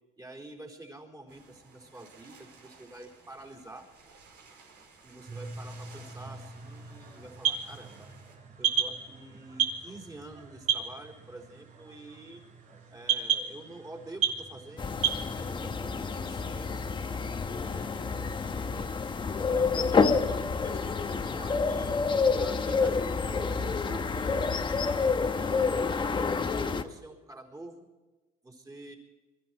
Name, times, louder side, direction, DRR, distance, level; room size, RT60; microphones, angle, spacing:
voice 1, 0.2-3.9 5.0-8.1 8.6-12.4 12.9-14.9 15.3-17.0 17.6-18.9 19.5-22.0 22.4-27.9 28.4-29.0, right 2 dB, 20° right, 0 dB, 4.2 m, -47 dB
sound 1, 1.3-8.4, right 4 dB, 80° right, 5.1 m, -56 dB
sound 2, 5.3-15.2, right 8 dB, 45° right, 3.5 m, -34 dB
sound 3, 14.8-26.8, left 4 dB, 30° left, 1.1 m, -28 dB
22.5 x 13.5 x 4.7 m, 1.2 s
cardioid pair, 110°, 17 cm